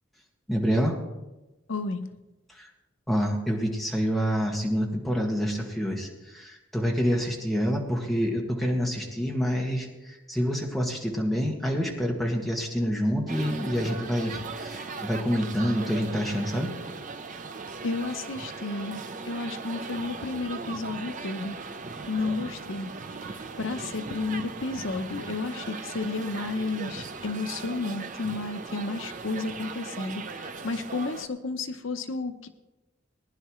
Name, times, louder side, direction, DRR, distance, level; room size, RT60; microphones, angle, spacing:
voice 1, 0.5-1.0 2.5-2.7 3.1-16.7, equal, ahead, -1 dB, 1.8 m, -27 dB
voice 2, 1.7-2.1 17.8-21.8 22.1-22.9 23.2-32.5, left 3 dB, 85° left, 9 dB, 0.8 m, -32 dB
sound 1, 13.3-31.3, right 4 dB, 40° right, 0.7 m, -38 dB
20.0 x 10.5 x 3.1 m, 1.0 s
head